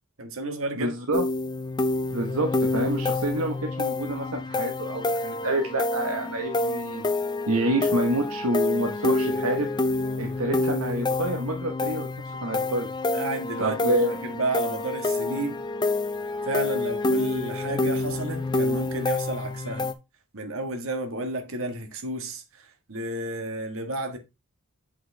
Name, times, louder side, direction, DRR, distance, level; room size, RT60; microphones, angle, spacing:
voice 1, 0.2-0.9 13.1-14.0 14.2-15.6 16.4-19.9 20.3-24.2, right 2 dB, 65° right, 1.6 m, -32 dB
voice 2, 0.7-1.2 2.1-7.0 7.5-9.7 10.2-12.9 13.6-14.2 15.3-15.5, right 1 dB, 85° right, 1.2 m, -28 dB
sound 1, 1.1-19.9, left 2 dB, 20° left, 0.6 m, -28 dB
7.6 x 5.5 x 3.3 m
head